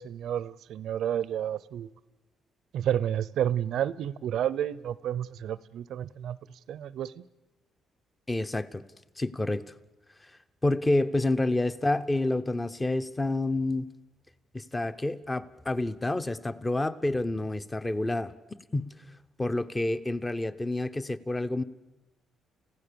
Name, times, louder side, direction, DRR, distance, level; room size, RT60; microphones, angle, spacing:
voice 1, 0.0-1.9 2.7-6.4 6.7-7.2, right 10 dB, 75° right, 0.7 m, -30 dB
voice 2, 8.3-8.8 9.2-9.6 10.6-13.9 14.5-18.3 18.7-18.9 19.4-21.6, left 2 dB, 15° left, 0.9 m, -28 dB
30.0 x 16.0 x 7.0 m
cardioid pair, 90°, 0 cm